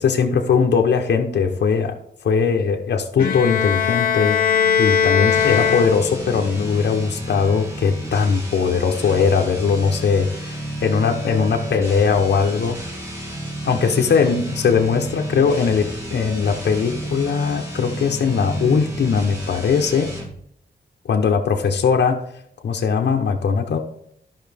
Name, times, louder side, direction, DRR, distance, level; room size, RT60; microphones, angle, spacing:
voice 1, 0.0-2.0 2.2-12.8 13.6-20.1 21.1-22.2 22.6-23.8, left 6 dB, 75° left, 2 dB, 0.9 m, -20 dB
Bowed string instrument, 3.2-6.4, left 7 dB, 55° left, 1.4 m, -20 dB
sound 1, 5.2-20.4, right 1 dB, 15° right, 1.9 m, -31 dB
12.5 x 5.8 x 3.4 m, 0.72 s
wide cardioid pair, 130°, 18 cm